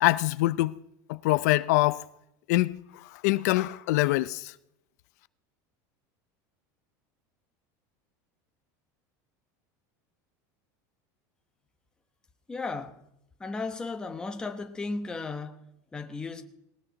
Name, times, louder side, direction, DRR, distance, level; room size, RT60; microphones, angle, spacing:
voice 1, 0.0-0.7 1.1-2.1 2.5-2.8 3.2-4.5, left 18 dB, 70° left, 0.6 m, -24 dB
voice 2, 12.5-13.0 13.4-16.4, left 3 dB, 10° left, 1.0 m, -35 dB
19.0 x 19.0 x 4.0 m
cardioid pair, 175°, 9 cm